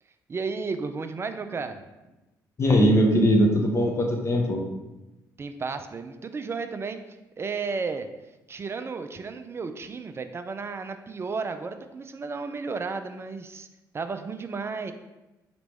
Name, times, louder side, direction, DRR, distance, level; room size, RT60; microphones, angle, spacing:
voice 1, 0.3-1.8 5.4-7.0 7.4-8.1 8.5-13.7 13.9-14.9, right 4 dB, 25° right, 8 dB, 0.4 m, -33 dB
voice 2, 2.6-4.6, equal, 30° left, 1 dB, 0.9 m, -20 dB
4.3 x 2.9 x 3.5 m, 1.0 s
figure-of-eight pair, 45°, 10 cm